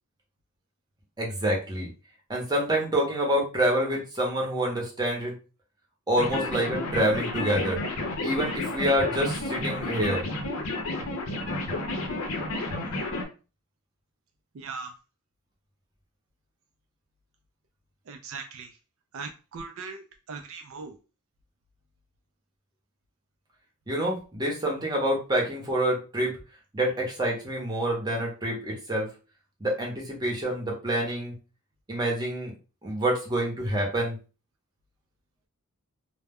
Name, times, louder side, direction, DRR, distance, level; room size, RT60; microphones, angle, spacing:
voice 1, 1.2-1.9 2.3-5.3 6.1-7.8 8.2-10.2 23.9-26.4 26.7-29.1 29.6-31.3 31.9-32.5 32.8-34.2, right 1 dB, 20° right, -2 dB, 0.7 m, -27 dB
sound 1, 6.2-13.2, left 2 dB, 65° left, 0.6 m, -31 dB
voice 2, 14.5-14.9 18.1-18.7 19.1-21.0, right 4 dB, 65° right, 5 dB, 0.4 m, -39 dB
2.2 x 2.0 x 3.5 m, 0.33 s
head